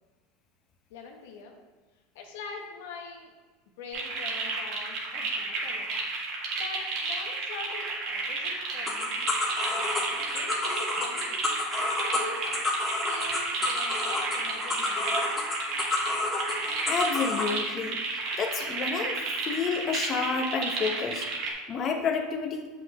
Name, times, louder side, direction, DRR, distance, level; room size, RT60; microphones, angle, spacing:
voice 1, 0.9-1.6 2.1-3.3 3.8-5.9 6.6-9.2 9.8-10.0 10.3-11.4 12.1-12.6 13.0-15.4, left 4 dB, 80° left, 1 dB, 1.1 m, -43 dB
sound 1, 3.9-21.5, right 3 dB, 60° right, 1.6 m, -32 dB
sound 2, 8.9-17.5, left 2 dB, 15° left, 1.6 m, -30 dB
voice 2, 16.9-18.0 18.4-19.2 19.4-22.7, left 5 dB, 35° left, 4 dB, 0.8 m, -30 dB
7.1 x 5.8 x 3.0 m, 1.4 s
supercardioid pair, 125°, 0 cm